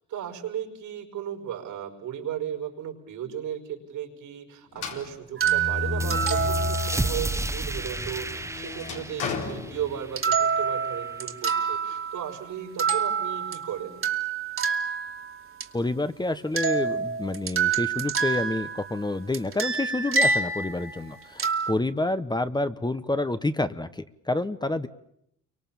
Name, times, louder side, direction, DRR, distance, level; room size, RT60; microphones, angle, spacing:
voice 1, 0.1-14.1, right 9 dB, 80° right, 4 dB, 5.3 m, -35 dB
sound 1, 4.7-7.2 7.6-10.4, left 4 dB, 90° left, 4.3 m, -33 dB
sound 2, 5.4-7.3 10.2-12.4 12.8-15.6 16.6-19.0 19.3-21.7, right 5 dB, 45° right, 2.5 m, -27 dB
sound 3, 6.0-11.2, right 2 dB, 10° right, 1.3 m, -33 dB
voice 2, 15.7-24.9, left 2 dB, 15° left, 11 dB, 1.2 m, -28 dB
29.5 x 24.0 x 7.2 m, 0.73 s
cardioid pair, 90°, 30 cm